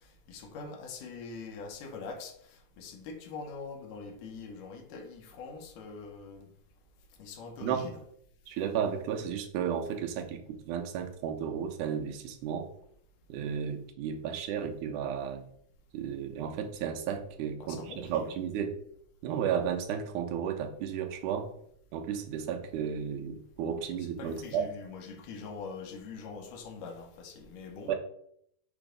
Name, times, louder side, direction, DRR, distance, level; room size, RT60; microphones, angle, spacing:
voice 1, 0.3-6.5 7.2-8.0 17.6-18.3 24.0-28.0, left 4 dB, 85° left, 4 dB, 2.5 m, -43 dB
voice 2, 8.5-12.7 13.3-15.4 15.9-18.8 19.2-21.5 21.9-24.7 27.9-28.0, right 8 dB, 85° right, 5 dB, 2.2 m, -33 dB
6.2 x 3.0 x 5.0 m, 0.69 s
omnidirectional pair, 3.6 m